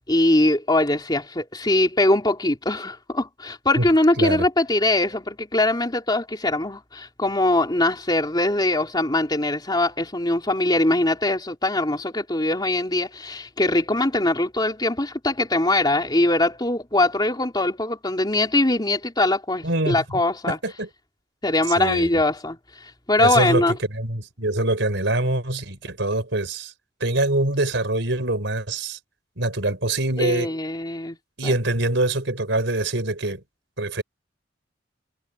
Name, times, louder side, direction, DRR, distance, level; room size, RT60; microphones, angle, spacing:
voice 1, 0.1-20.6 21.4-23.8 30.2-31.2 31.4-31.5, left 2 dB, 20° left, 3.1 m, -22 dB
voice 2, 19.6-20.2 20.5-20.9 21.8-22.1 23.2-26.7 27.0-29.0 29.4-30.5 31.4-33.4 33.8-34.0, right 2 dB, 70° right, 4.5 m, -24 dB
head